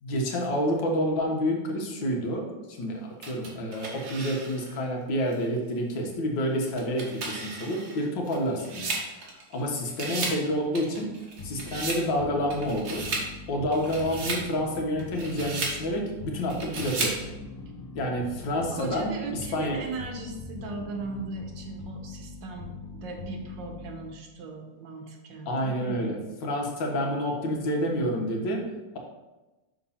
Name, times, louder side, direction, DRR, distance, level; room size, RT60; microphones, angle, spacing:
voice 1, 0.0-9.0 9.5-11.1 11.4-13.1 13.5-17.3 18.0-19.8 25.5-29.0, equal, 75° left, 0 dB, 1.8 m, -29 dB
sound 1, 3.2-4.8 5.3-5.4 6.6-9.6 9.9-10.4 10.7-12.0 12.5-13.3 13.7-14.5 15.0-15.8 16.5-17.2, right 3 dB, 60° right, 1.6 m, -34 dB
sound 2, 11.4-24.3, left 3 dB, 40° left, 0.8 m, -42 dB
voice 2, 18.5-26.4, right 3 dB, 75° right, 3 dB, 1.7 m, -38 dB
5.9 x 3.7 x 5.5 m, 1.1 s
omnidirectional pair, 2.0 m